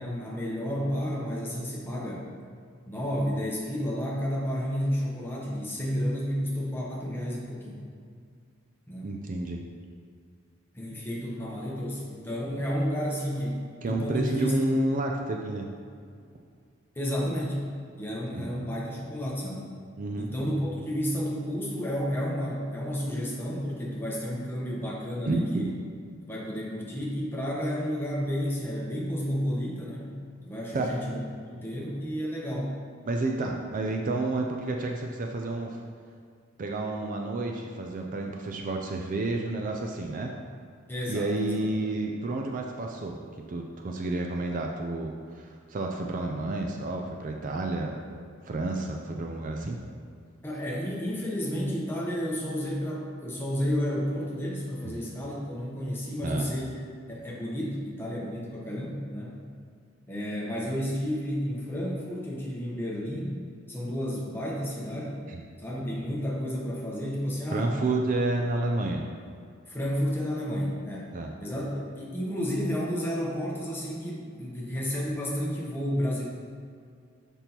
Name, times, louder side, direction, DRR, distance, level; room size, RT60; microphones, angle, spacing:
voice 1, 0.0-2.3 2.9-7.8 8.9-9.1 10.7-14.6 17.0-17.6 18.0-19.7 20.2-25.7 26.3-30.2 30.4-31.2 31.5-32.7 40.9-41.6 50.4-56.7 57.1-59.4 60.1-63.4 63.7-65.2 65.6-67.8 69.7-71.1 71.4-76.2, equal, 10° left, -4 dB, 0.9 m, -31 dB
voice 2, 9.0-9.6 13.8-15.7 18.3-18.5 20.0-20.3 25.3-25.7 30.7-30.9 33.1-35.8 36.6-40.3 41.1-43.2 43.5-48.0 48.4-49.8 54.8-55.0 56.2-56.5 65.3-65.4 67.5-69.1 71.1-71.3, right 2 dB, 40° right, 2 dB, 0.4 m, -30 dB
6.1 x 5.3 x 2.9 m, 2.2 s
head